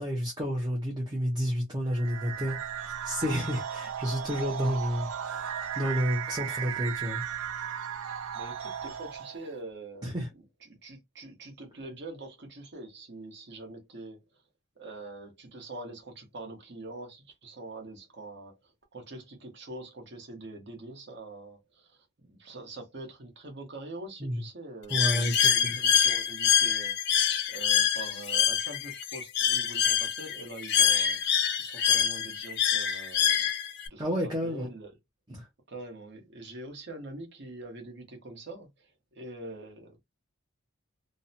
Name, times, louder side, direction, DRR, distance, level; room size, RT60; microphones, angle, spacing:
voice 1, 0.0-7.2 10.0-10.3 24.2-24.5 24.9-25.8 34.0-34.7 35.3-35.5, equal, 20° right, 0.5 m, -31 dB
sound 1, 1.9-9.5, right 8 dB, 75° right, 0.4 m, -36 dB
voice 2, 8.3-14.4 14.8-27.2 27.5-33.5 33.9-34.9 35.7-40.0, right 2 dB, 55° right, 0.8 m, -44 dB
Bird, 24.9-33.9, left 8 dB, 50° left, 0.3 m, -26 dB
2.6 x 2.0 x 2.6 m
head